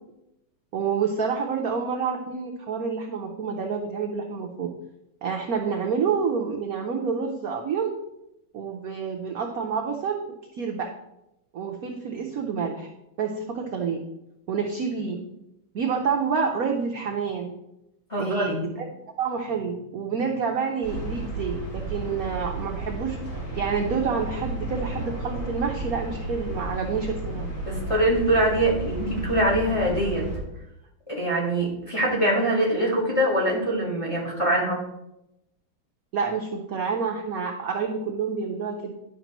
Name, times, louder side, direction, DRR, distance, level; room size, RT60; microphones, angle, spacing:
voice 1, 0.7-4.7 5.2-7.9 8.5-10.2 10.5-10.9 11.5-12.9 13.2-14.0 14.5-15.2 15.7-17.5 18.2-18.9 19.2-23.2 23.6-27.5 36.1-38.9, right 5 dB, 70° right, 2 dB, 0.8 m, -28 dB
voice 2, 18.1-18.7 27.6-30.3 31.1-34.8, right 1 dB, 15° left, -4 dB, 1.4 m, -23 dB
sound 1, 20.8-30.4, right 1 dB, 90° left, 3.6 m, -33 dB
10.5 x 5.9 x 3.0 m, 0.88 s
omnidirectional pair, 2.4 m